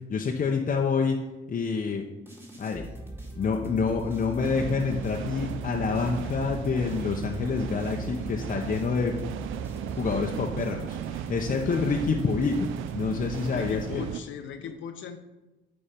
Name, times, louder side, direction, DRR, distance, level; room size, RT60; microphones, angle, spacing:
voice 1, 0.1-1.2 1.5-2.0 2.6-2.9 3.4-9.1 9.9-12.7 12.9-14.0, left 5 dB, 45° left, 1 dB, 0.8 m, -27 dB
sound 1, 2.3-14.4, right 1 dB, 10° right, 1.9 m, -41 dB
sound 2, 4.4-14.2, right 11 dB, 85° right, 0.4 m, -36 dB
voice 2, 11.6-12.0 13.5-15.2, left 7 dB, 75° left, 6 dB, 0.7 m, -38 dB
9.9 x 4.4 x 5.2 m, 1.1 s
cardioid pair, 90°, 20 cm